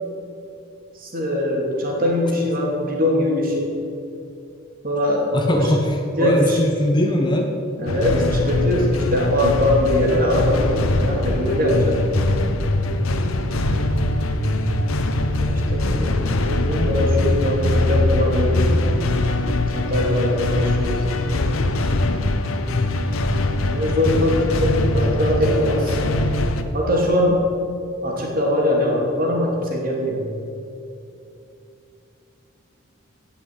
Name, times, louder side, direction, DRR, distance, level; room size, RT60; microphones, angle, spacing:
voice 1, 0.9-3.7 4.8-5.7 6.1-6.6 7.8-12.0 15.4-16.2 16.5-18.8 19.7-21.0 23.7-26.0 26.7-27.4 28.0-30.2, left 1 dB, 40° right, -1 dB, 2.8 m, -22 dB
voice 2, 5.3-7.5, left 1 dB, 20° left, 2 dB, 1.0 m, -20 dB
sound 1, 7.9-26.6, left 2 dB, 80° left, 1.0 m, -21 dB
17.0 x 6.0 x 8.5 m, 2.7 s
head